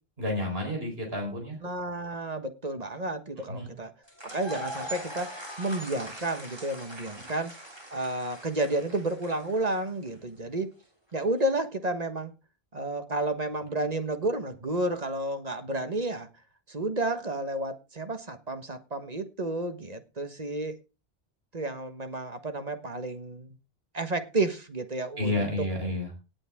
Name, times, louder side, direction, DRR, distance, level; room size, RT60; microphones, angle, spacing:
voice 1, 0.2-1.6 3.5-3.7 7.2-7.3 25.2-26.1, left 1 dB, 70° right, 1 dB, 4.7 m, -30 dB
voice 2, 1.6-3.9 4.2-5.3 5.6-7.5 7.9-10.7 11.1-12.3 12.7-16.3 16.7-20.8 21.5-23.6 23.9-25.7, right 2 dB, 40° right, 8 dB, 1.5 m, -31 dB
sound 1, 4.1-10.1, equal, 25° right, 3.3 m, -41 dB
18.5 x 8.7 x 3.6 m, 0.30 s
omnidirectional pair, 1.0 m